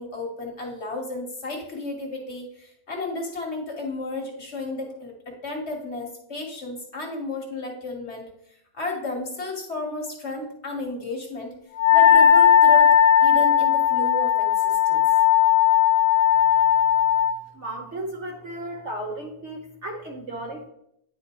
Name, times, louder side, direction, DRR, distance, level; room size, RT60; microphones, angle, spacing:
voice 1, 0.0-5.1 5.4-8.3 8.7-11.5 11.9-12.9 13.2-15.0, left 2 dB, 45° left, 1 dB, 1.3 m, -33 dB
Wind instrument woodwind instrument, 11.8-17.3, left 9 dB, 70° left, 1.0 m, -17 dB
voice 2, 17.5-20.7, right 1 dB, 55° right, 1 dB, 0.9 m, -34 dB
9.7 x 4.2 x 2.9 m, 0.75 s
omnidirectional pair, 1.7 m